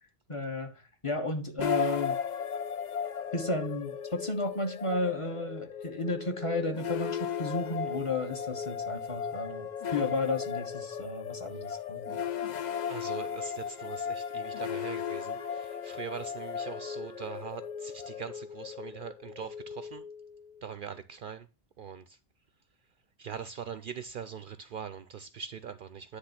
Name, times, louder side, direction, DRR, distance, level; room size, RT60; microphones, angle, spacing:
voice 1, 0.3-2.2 3.3-12.2, left 2 dB, 30° left, 1.1 m, -33 dB
sound 1, 1.6-20.7, left 8 dB, 50° left, 0.6 m, -36 dB
voice 2, 12.9-20.1 20.6-21.5 21.8-22.2 23.2-26.2, right 7 dB, 60° right, 0.6 m, -42 dB
Wind instrument woodwind instrument, 13.7-17.5, equal, 90° left, 2.6 m, -51 dB
9.7 x 3.4 x 5.7 m
omnidirectional pair, 1.1 m